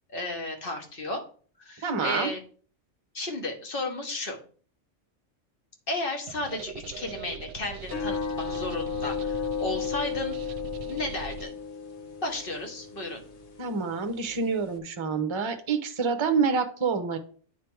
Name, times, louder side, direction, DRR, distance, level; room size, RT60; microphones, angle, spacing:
voice 1, 0.1-1.2 1.6-2.4 3.1-4.4 5.9-10.4 10.9-11.5 12.2-13.2, left 2 dB, 50° left, 3 dB, 1.4 m, -33 dB
voice 2, 1.8-2.3 13.6-17.2, right 5 dB, 30° right, 9 dB, 0.7 m, -27 dB
sound 1, 6.3-11.5, right 7 dB, 70° right, 0.8 m, -41 dB
sound 2, 7.8-14.8, left 6 dB, 70° left, 1.4 m, -34 dB
9.3 x 3.3 x 4.6 m, 0.43 s
omnidirectional pair, 1.2 m